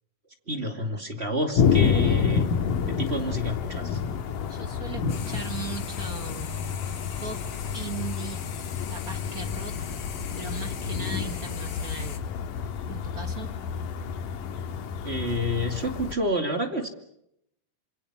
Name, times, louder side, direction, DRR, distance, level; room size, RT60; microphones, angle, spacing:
voice 1, 0.5-2.5 2.8-4.0 15.0-16.9, equal, 20° right, 5 dB, 2.1 m, -29 dB
sound 1, 1.6-16.1, left 7 dB, 75° left, 3.1 m, -29 dB
voice 2, 4.5-6.7 7.2-7.4 7.7-8.5 8.9-9.7 10.4-12.2 12.9-13.5, right 5 dB, 45° right, 6 dB, 1.2 m, -38 dB
sound 2, 5.1-12.2, left 6 dB, 45° left, 2.0 m, -39 dB
27.5 x 26.5 x 6.1 m, 0.78 s
omnidirectional pair, 3.8 m